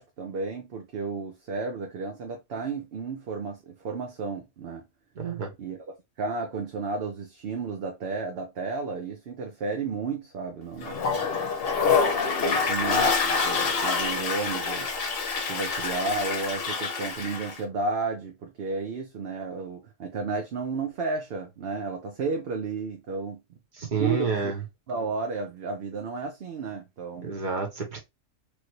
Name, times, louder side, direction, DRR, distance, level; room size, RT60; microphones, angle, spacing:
voice 1, 0.0-4.9 5.6-11.3 12.4-14.9 15.5-23.6 24.0-24.5 24.9-27.3, right 4 dB, 55° right, 0.8 m, -33 dB
voice 2, 5.1-5.5 23.7-24.6 27.2-28.0, right 5 dB, 40° right, 1.2 m, -29 dB
Toilet flush, 10.8-17.6, left 5 dB, 55° left, 0.9 m, -26 dB
3.2 x 2.6 x 2.9 m
omnidirectional pair, 1.4 m